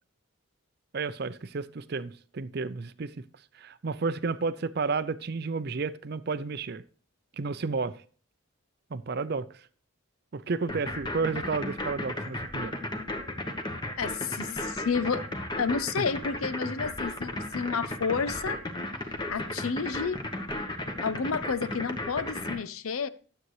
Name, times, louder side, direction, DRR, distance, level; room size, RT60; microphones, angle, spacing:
voice 1, 0.9-3.1 3.6-6.8 7.4-8.0 8.9-9.5 10.3-12.7, right 4 dB, 50° right, 0.5 m, -31 dB
sound 1, 10.7-22.6, left 1 dB, 20° left, 1.2 m, -34 dB
voice 2, 14.0-15.2 15.6-18.6 19.3-20.2 21.0-23.1, left 5 dB, 80° left, 0.6 m, -30 dB
12.5 x 7.8 x 3.2 m
head